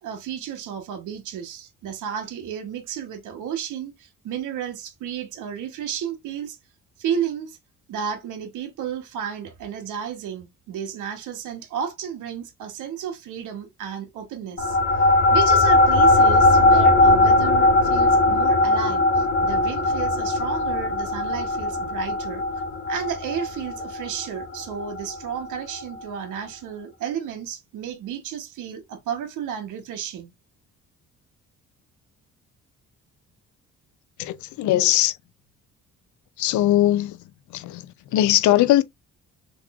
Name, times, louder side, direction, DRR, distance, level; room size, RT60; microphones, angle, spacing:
voice 1, 0.0-6.6 7.0-7.6 7.9-14.8 15.3-22.4 22.9-30.3, right 8 dB, 85° right, 1.0 m, -32 dB
sound 1, 14.6-25.4, left 2 dB, 45° left, 1.0 m, -19 dB
voice 2, 34.2-35.2 36.4-37.2 37.5-38.8, left 14 dB, 75° left, 0.5 m, -20 dB
3.6 x 3.1 x 2.3 m
cardioid pair, 90°, 30 cm